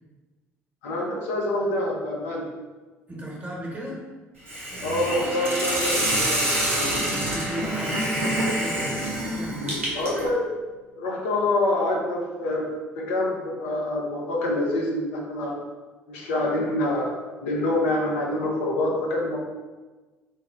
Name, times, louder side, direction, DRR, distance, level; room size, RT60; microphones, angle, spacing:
voice 1, 0.8-2.5 4.8-6.4 9.9-10.5 11.0-12.7 13.0-15.6 16.1-19.4, left 1 dB, 75° left, -1 dB, 0.6 m, -26 dB
voice 2, 3.1-4.0 7.0-9.8, equal, 20° right, -3 dB, 1.1 m, -36 dB
Hiss, 4.5-10.3, right 1 dB, 90° right, 0.6 m, -27 dB
Bowed string instrument, 4.7-10.9 11.3-11.4, equal, 60° right, 0.8 m, -38 dB
3.5 x 2.0 x 3.5 m, 1.3 s
hypercardioid pair, 55°, 7 cm